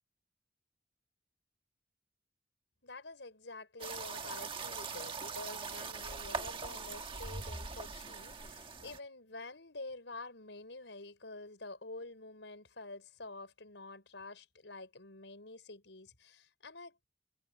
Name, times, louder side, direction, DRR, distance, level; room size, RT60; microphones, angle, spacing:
voice 1, 2.8-17.1, left 2 dB, 85° left, 5.4 m, -48 dB
sound 1, 3.8-9.0, right 4 dB, 30° right, 1.5 m, -42 dB
head